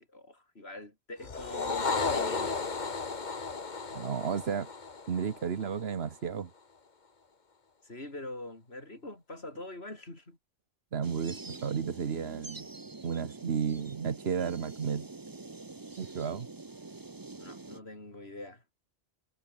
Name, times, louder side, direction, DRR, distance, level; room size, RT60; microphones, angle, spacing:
voice 1, 0.1-2.6 7.8-10.4 17.4-18.6, left 2 dB, 80° left, 5.5 m, -43 dB
sound 1, 1.2-5.8, left 4 dB, 45° left, 1.5 m, -34 dB
voice 2, 3.9-4.7 5.1-6.5 10.9-12.7 13.0-15.1 16.0-16.5, right 6 dB, 75° right, 1.4 m, -33 dB
sound 2, 11.0-17.8, right 3 dB, 20° right, 0.9 m, -46 dB
omnidirectional pair, 1.1 m